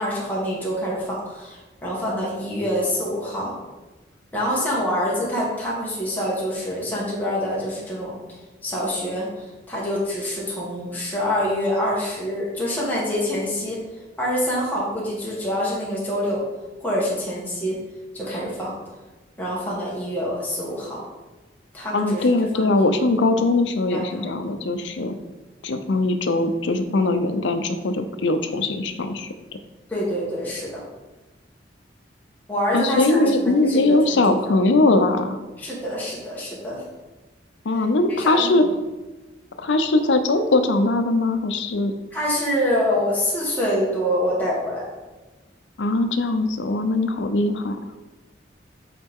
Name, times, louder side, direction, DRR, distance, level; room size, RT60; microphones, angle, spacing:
voice 1, 0.0-3.5 4.3-8.2 8.6-13.8 14.2-16.4 16.8-17.8 18.1-18.7 19.4-21.0 21.7-22.3 22.5-22.9 23.3-23.5 23.9-24.2 29.9-30.8 32.5-34.4 35.6-36.8 37.8-38.6 42.1-44.8, equal, 10° left, -6 dB, 1.5 m, -26 dB
voice 2, 21.9-25.2 25.6-29.3 32.7-35.4 37.6-38.6 39.6-41.9 45.8-47.8, left 2 dB, 85° left, 8 dB, 0.6 m, -21 dB
8.5 x 4.0 x 3.6 m, 1.2 s
head